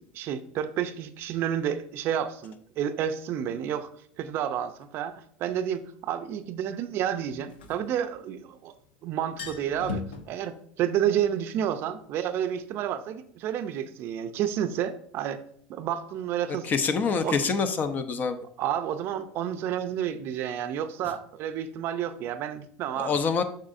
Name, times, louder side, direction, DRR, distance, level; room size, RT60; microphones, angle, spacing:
voice 1, 0.1-3.9 4.2-8.8 9.0-15.4 15.7-16.7 17.2-17.4 18.6-23.1, right 9 dB, 50° right, 10 dB, 0.6 m, -30 dB
sound 1, 4.8-4.9 7.3-8.6 8.9-9.0 9.2-10.2, left 4 dB, 85° left, 1.0 m, -37 dB
voice 2, 16.6-18.4 23.0-23.4, left 5 dB, 35° left, 10 dB, 0.7 m, -26 dB
7.3 x 5.4 x 2.6 m, 0.62 s
hypercardioid pair, 95°, 5 cm